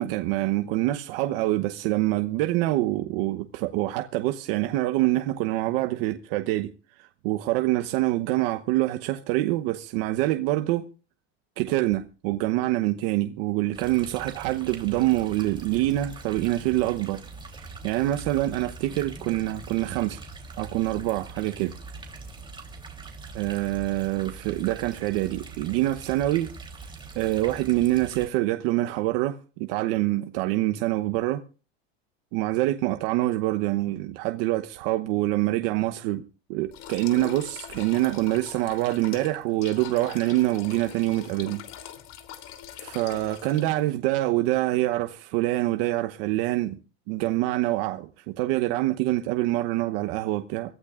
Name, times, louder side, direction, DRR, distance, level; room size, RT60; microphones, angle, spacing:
voice 1, 0.0-6.7 7.0-10.8 11.6-17.2 17.6-20.2 20.6-21.7 23.3-26.5 27.1-31.4 32.3-36.2 36.5-41.6 42.8-46.8 47.1-50.7, right 16 dB, 65° right, 1.1 m, -25 dB
sound 1, 13.7-28.3, right 4 dB, 15° right, 3.4 m, -42 dB
sound 2, 36.7-43.9, left 11 dB, 55° left, 3.3 m, -42 dB
24.5 x 15.0 x 2.5 m
supercardioid pair, 110°, 31 cm